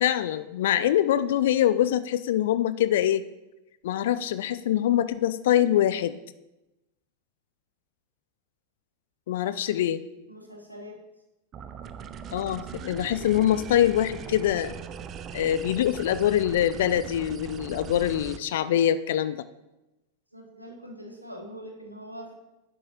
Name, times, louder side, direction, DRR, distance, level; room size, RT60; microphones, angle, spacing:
voice 1, 0.0-3.2 3.8-6.2 9.3-10.0 12.3-14.7 15.3-19.5, left 11 dB, 55° left, 14 dB, 0.3 m, -24 dB
voice 2, 10.3-11.0 20.3-22.3, equal, 90° right, 1 dB, 1.4 m, -43 dB
sound 1, 11.5-18.4, right 7 dB, 30° right, 0.5 m, -40 dB
10.5 x 7.7 x 2.9 m, 0.99 s
figure-of-eight pair, 90°, 0 cm